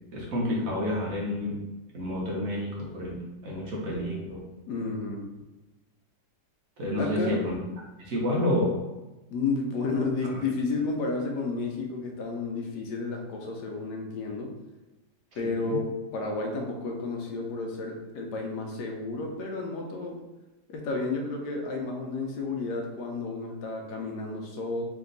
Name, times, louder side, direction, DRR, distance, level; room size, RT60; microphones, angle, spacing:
voice 1, 0.1-1.5 1.9-3.2 3.4-4.4 6.8-7.6 8.0-8.7 15.4-15.8, left 1 dB, 55° right, -4 dB, 1.2 m, -29 dB
voice 2, 4.7-5.3 7.0-7.4 9.3-14.5 15.3-20.2 20.7-24.8, left 3 dB, 75° left, 1 dB, 1.2 m, -31 dB
3.4 x 3.0 x 3.9 m, 1.1 s
omnidirectional pair, 1.9 m